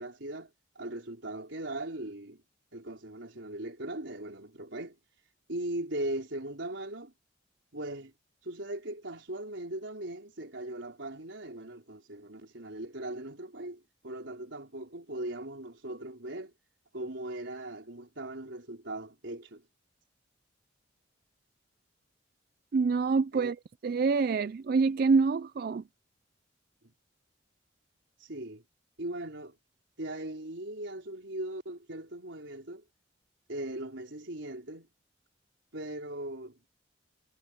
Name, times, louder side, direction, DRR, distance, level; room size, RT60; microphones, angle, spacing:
voice 1, 0.0-2.4 2.7-5.0 5.5-7.1 7.7-8.1 8.4-16.5 16.9-19.7 23.3-23.5 26.8-26.9 28.2-28.6 29.0-29.5 30.0-32.8 33.5-34.9 35.7-36.7, right 1 dB, 75° right, 4.0 m, -39 dB
voice 2, 22.7-23.6 23.8-25.8, right 4 dB, 50° right, 0.4 m, -26 dB
head